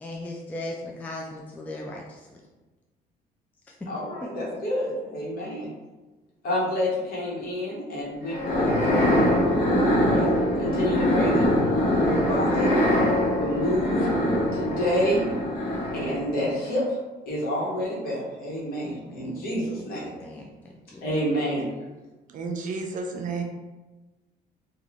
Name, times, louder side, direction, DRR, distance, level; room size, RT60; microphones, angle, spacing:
voice 1, 0.0-2.3 18.8-21.1, left 1 dB, 10° left, -1 dB, 0.3 m, -38 dB
voice 2, 3.9-5.7 6.4-9.6 10.0-10.3 10.6-11.5 12.0-12.7 13.3-14.1 14.5-15.2 15.9-16.8 17.3-20.0 21.0-21.7, equal, 60° left, -5 dB, 1.1 m, -28 dB
sound 1, 8.3-16.3, equal, 85° left, 0.9 m, -23 dB
voice 3, 22.3-23.4, right 4 dB, 50° right, 3 dB, 0.5 m, -31 dB
3.1 x 2.4 x 2.5 m, 1.2 s
cardioid pair, 110°, 17 cm